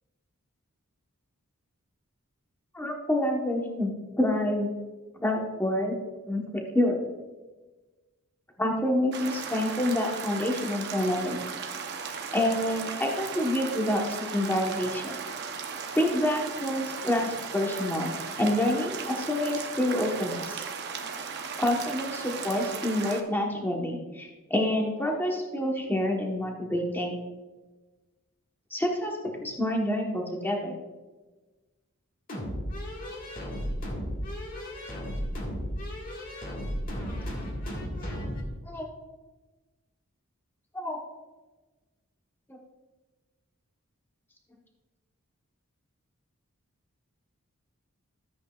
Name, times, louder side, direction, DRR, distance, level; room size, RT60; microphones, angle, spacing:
voice 1, 2.7-3.9 4.2-4.7 5.1-5.9 6.3-7.0 8.6-11.4 12.3-15.1 15.9-20.6 21.6-27.2 28.7-30.8 38.7-38.9 40.7-41.0 42.5-42.6, left 1 dB, 10° left, 0 dB, 1.1 m, -28 dB
sound 1, 9.1-23.2, right 6 dB, 50° right, 0.7 m, -36 dB
sound 2, 32.3-38.5, equal, 40° left, 1.7 m, -34 dB
13.5 x 8.1 x 2.4 m, 1.2 s
head